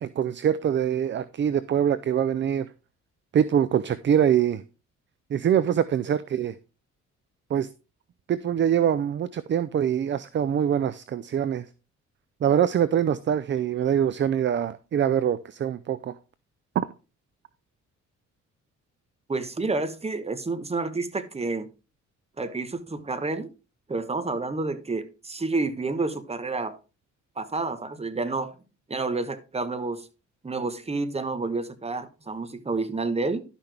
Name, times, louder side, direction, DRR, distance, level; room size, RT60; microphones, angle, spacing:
voice 1, 0.0-2.7 3.3-4.6 5.3-6.6 7.5-7.7 8.3-11.7 12.4-16.2 16.8-16.9, right 9 dB, 40° right, 0.5 m, -24 dB
voice 2, 19.3-21.7 22.4-23.5 23.9-26.8 27.4-28.5 28.9-30.1 30.4-33.4, right 3 dB, 20° right, 1.1 m, -29 dB
12.0 x 5.8 x 3.4 m
cardioid pair, 90°, 30 cm